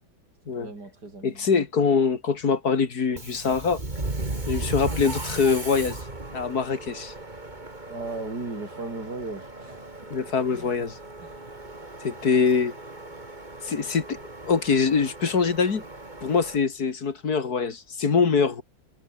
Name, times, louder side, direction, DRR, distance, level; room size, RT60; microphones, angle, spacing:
voice 1, 0.5-1.5 7.9-9.9 10.5-10.8 11.2-11.5, right 2 dB, 55° right, 6.5 m, -37 dB
voice 2, 1.2-3.8 4.5-6.0 6.3-7.1 10.1-11.0 12.0-12.7 13.6-14.2 14.5-15.8 16.2-18.6, left 5 dB, 55° left, 2.6 m, -23 dB
Subway metro underground, 3.1-16.6, right 2 dB, 20° right, 3.4 m, -37 dB
omnidirectional pair, 2.1 m